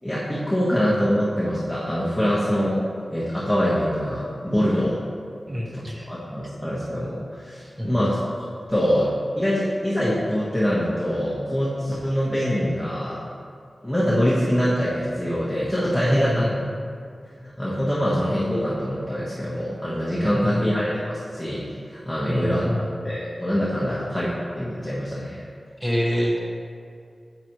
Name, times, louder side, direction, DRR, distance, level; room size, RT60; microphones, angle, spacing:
voice 1, 0.0-2.8 3.1-5.0 5.7-8.2 8.7-13.2 13.8-16.5 17.3-22.7 23.0-25.4, equal, 5° left, -8 dB, 1.0 m, -24 dB
voice 2, 5.5-6.1 7.8-8.1 16.1-16.6 20.4-20.8 22.3-23.0 25.8-26.4, equal, 20° right, -2 dB, 0.9 m, -26 dB
7.8 x 5.7 x 2.9 m, 2.2 s
wide cardioid pair, 85°, 0 cm